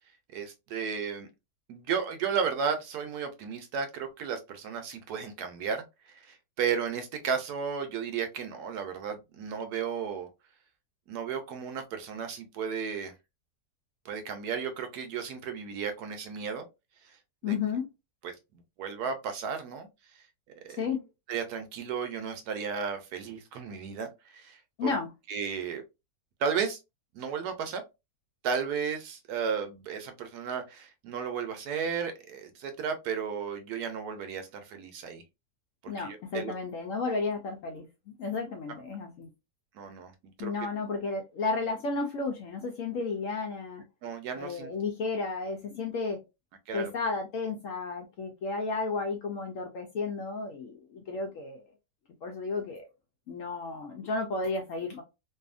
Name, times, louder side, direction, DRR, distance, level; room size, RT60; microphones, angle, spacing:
voice 1, 0.3-1.3 1.7-10.3 11.1-13.1 14.0-16.7 17.4-17.5 18.2-18.3 18.8-19.9 20.6-20.9 21.3-24.9 25.3-25.8 26.4-26.8 27.1-27.8 28.4-35.2 35.8-36.5 39.7-40.1 40.4-40.5 44.0-44.7 46.7-46.9, right 6 dB, 75° right, 1.1 m, -34 dB
voice 2, 17.4-17.9 20.7-21.0 24.8-25.1 35.9-37.8 38.2-39.3 40.4-43.8 44.4-46.2 46.7-51.6 52.2-52.9 53.3-55.0, left 4 dB, 70° left, 0.8 m, -33 dB
2.7 x 2.5 x 2.4 m
omnidirectional pair, 1.7 m